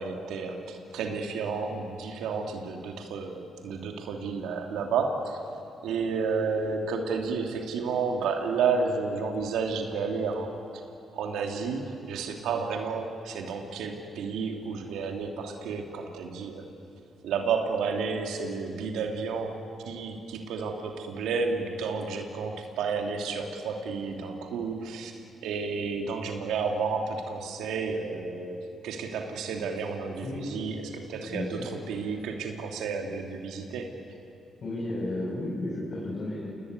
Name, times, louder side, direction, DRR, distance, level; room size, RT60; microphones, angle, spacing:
voice 1, 0.0-5.4 5.8-10.5 11.1-16.6 17.2-33.9, right 5 dB, 85° right, 3 dB, 3.0 m, -31 dB
voice 2, 31.3-31.7 34.6-36.5, left 1 dB, 55° left, -5 dB, 7.0 m, -33 dB
29.0 x 19.0 x 9.6 m, 2.8 s
supercardioid pair, 65°, 0 cm